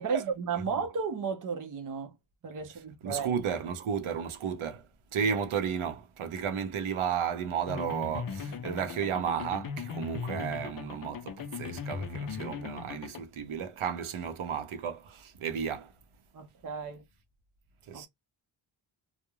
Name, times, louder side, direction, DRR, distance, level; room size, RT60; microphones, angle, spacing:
voice 1, 0.0-2.2 2.4-3.3 16.3-17.0 17.9-18.1, right 5 dB, 40° right, 0.5 m, -33 dB
voice 2, 3.0-15.9 17.9-18.1, right 7 dB, 80° right, 0.7 m, -33 dB
sound 1, 7.7-13.2, left 6 dB, 50° left, 0.4 m, -38 dB
2.3 x 2.0 x 2.9 m
wide cardioid pair, 150°, 49 cm